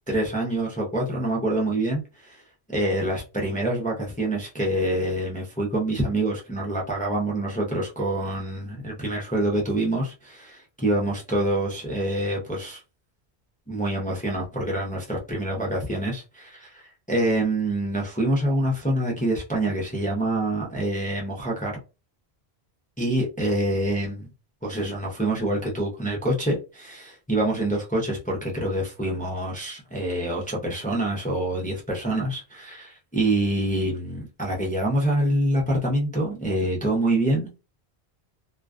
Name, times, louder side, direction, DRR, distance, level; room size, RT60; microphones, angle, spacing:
voice 1, 0.1-2.4 2.7-12.8 13.7-21.8 23.0-24.3 24.6-37.6, right 1 dB, 15° left, 0.3 m, -26 dB
2.3 x 2.2 x 2.4 m
omnidirectional pair, 1.1 m